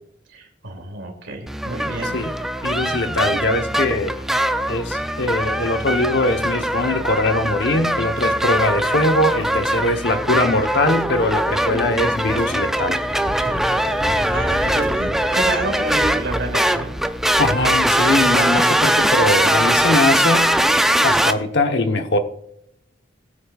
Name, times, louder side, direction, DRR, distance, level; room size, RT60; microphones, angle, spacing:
voice 1, 0.3-2.1 13.4-16.9, right 2 dB, 75° right, 2.7 m, -30 dB
sound 1, 1.5-21.3, right 1 dB, ahead, 0.5 m, -21 dB
voice 2, 2.6-4.1 4.7-13.0 17.4-20.6 21.0-22.2, left 2 dB, 60° left, 1.0 m, -21 dB
Drawer open or close, 8.2-10.2 11.0-13.1 13.4-14.2 14.5-15.4 15.8-18.2, right 2 dB, 40° right, 4.1 m, -46 dB
sound 2, 11.6-18.5, left 1 dB, 20° left, 0.9 m, -34 dB
20.5 x 8.5 x 2.4 m
head